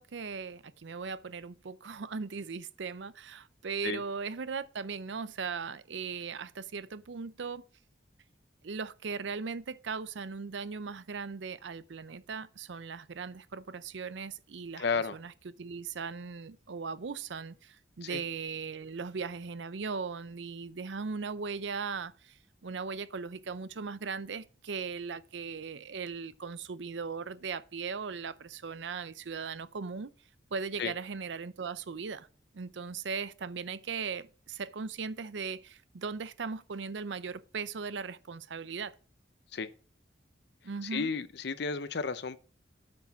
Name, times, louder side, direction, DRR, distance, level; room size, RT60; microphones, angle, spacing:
voice 1, 0.0-7.6 8.6-30.1 30.5-32.3 32.5-38.9 40.6-41.1, right 5 dB, 70° right, 0.6 m, -38 dB
voice 2, 14.8-15.2 18.0-18.2 30.8-30.9 39.5-39.7 40.9-42.4, left 5 dB, 60° left, 0.7 m, -32 dB
8.5 x 6.2 x 5.8 m
head